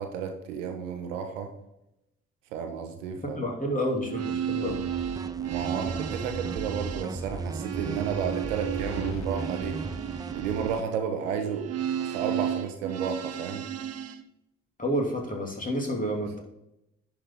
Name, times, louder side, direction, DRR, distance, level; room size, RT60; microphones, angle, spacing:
voice 1, 0.0-1.5 2.5-3.6 5.4-9.8 10.3-11.7 12.0-13.6, right 7 dB, 85° right, 6 dB, 1.0 m, -32 dB
voice 2, 3.2-4.9 14.8-16.4, equal, 20° left, -1 dB, 2.9 m, -29 dB
sound 1, 3.9-14.2, right 10 dB, 45° right, 0.8 m, -34 dB
sound 2, 4.7-10.8, right 3 dB, 10° right, 0.4 m, -36 dB
sound 3, 8.8-9.3, left 4 dB, 45° left, 1.7 m, -40 dB
10.5 x 4.9 x 3.7 m, 0.85 s
hypercardioid pair, 50°, 37 cm